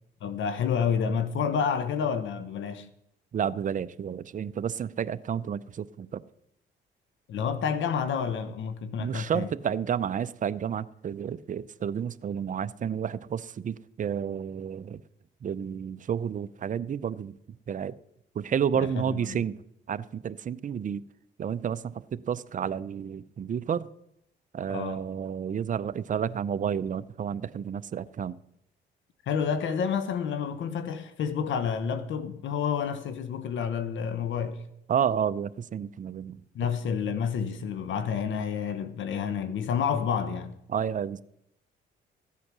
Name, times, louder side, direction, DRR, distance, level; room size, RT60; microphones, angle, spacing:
voice 1, 0.2-2.9 7.3-9.5 18.8-19.4 24.7-25.0 29.2-34.6 36.5-40.6, left 7 dB, 75° left, 1.0 m, -29 dB
voice 2, 3.3-6.2 9.0-15.0 15.4-17.3 17.7-17.9 18.3-19.6 19.9-21.0 21.4-23.9 24.5-28.4 34.9-36.4 40.7-41.2, right 8 dB, 40° right, 0.6 m, -31 dB
14.5 x 8.3 x 6.1 m
cardioid pair, 90°, 20 cm